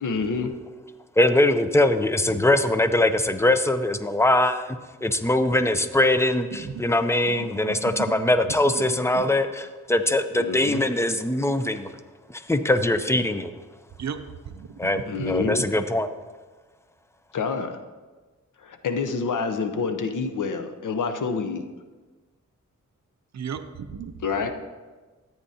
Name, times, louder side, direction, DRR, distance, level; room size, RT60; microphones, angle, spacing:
voice 1, 0.0-0.5 2.4-2.5 10.3-10.8 15.1-15.6 17.3-17.8 18.6-21.6 24.2-24.5, left 4 dB, 80° left, 8 dB, 0.8 m, -27 dB
voice 2, 1.2-4.8 5.0-11.9 12.3-13.5 14.8-15.0 15.3-16.1, left 1 dB, 10° left, 10 dB, 0.5 m, -22 dB
voice 3, 7.3-8.3 8.7-9.2 14.0-15.5 23.3-24.1, right 6 dB, 60° right, 9 dB, 0.6 m, -36 dB
13.5 x 8.9 x 2.8 m, 1.3 s
wide cardioid pair, 90°, 30 cm